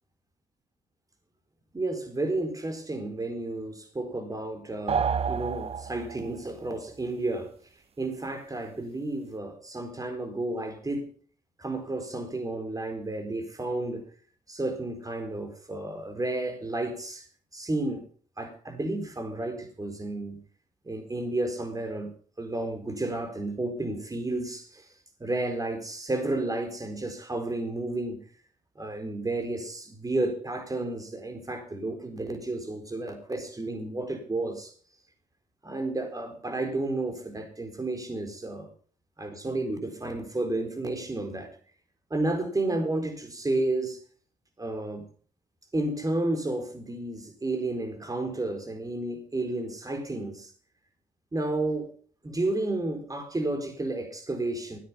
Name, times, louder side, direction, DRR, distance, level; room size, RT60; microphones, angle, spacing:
voice 1, 1.7-7.6 8.0-11.1 11.6-14.0 14.5-17.3 17.5-18.0 18.4-20.4 20.8-24.9 25.2-28.2 28.8-34.7 35.6-38.7 39.2-41.5 42.1-44.0 44.6-45.1 45.7-50.5 51.3-51.9 52.2-54.8, right 2 dB, 25° right, 4.2 m, -32 dB
sound 1, 4.9-6.4, right 6 dB, 40° right, 0.8 m, -29 dB
14.0 x 9.6 x 5.6 m
cardioid pair, 70°, 15 cm